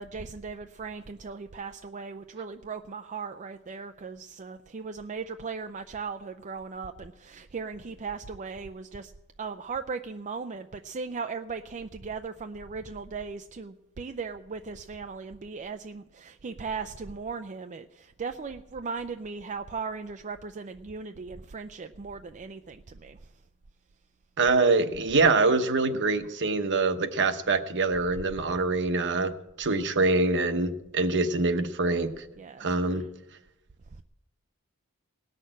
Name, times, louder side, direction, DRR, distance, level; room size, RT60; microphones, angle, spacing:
voice 1, 0.0-9.1 9.4-23.2 32.4-32.7, right 5 dB, 35° right, 7 dB, 0.4 m, -38 dB
voice 2, 24.4-29.3 29.6-32.1 32.6-33.0, right 3 dB, 55° right, 9 dB, 1.0 m, -24 dB
18.0 x 6.5 x 8.8 m, 0.92 s
head